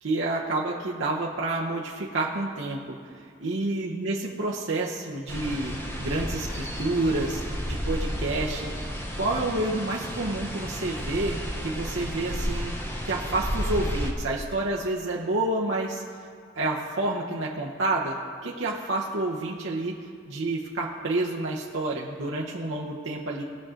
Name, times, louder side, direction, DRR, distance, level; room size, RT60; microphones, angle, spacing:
voice 1, 0.0-7.4 7.7-8.7 9.2-12.7 13.0-16.0 16.5-18.1 18.4-19.9 20.2-23.4, right 2 dB, 75° right, -3 dB, 0.9 m, -29 dB
sound 1, 5.3-14.1, equal, 10° left, 0.9 m, -32 dB
18.5 x 6.4 x 3.7 m, 2.3 s
head